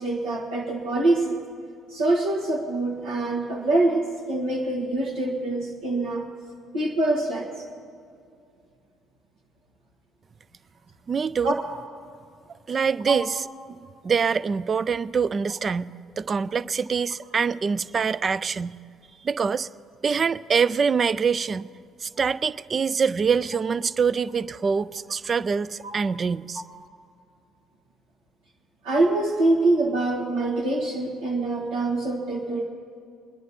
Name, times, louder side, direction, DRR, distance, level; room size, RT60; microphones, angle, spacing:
voice 1, 0.0-1.4 1.9-6.3 6.7-7.6 11.4-11.6 13.1-13.2 25.8-26.0 26.5-26.6 28.8-32.6, right 2 dB, 70° right, -4 dB, 1.3 m, -25 dB
voice 2, 11.1-11.6 12.7-13.4 14.0-15.9 16.2-18.8 19.2-19.7 20.0-21.7 22.0-26.6, right 6 dB, 35° right, 18 dB, 0.3 m, -24 dB
23.5 x 10.5 x 4.1 m, 2.3 s
figure-of-eight pair, 50°, 0 cm